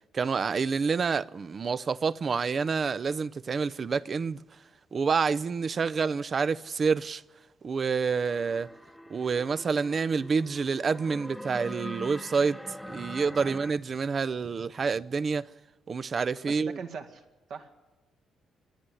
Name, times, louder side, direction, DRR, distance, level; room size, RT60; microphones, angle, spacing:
voice 1, 0.1-4.4 4.9-7.2 7.6-8.7 9.1-12.6 12.9-15.5 15.9-16.8, right 5 dB, 40° right, 0.6 m, -28 dB
sound 1, 8.3-13.7, equal, 5° left, 0.6 m, -43 dB
voice 2, 16.5-17.8, right 5 dB, 75° right, 2.1 m, -42 dB
26.0 x 10.5 x 9.9 m
cardioid pair, 90°, 0 cm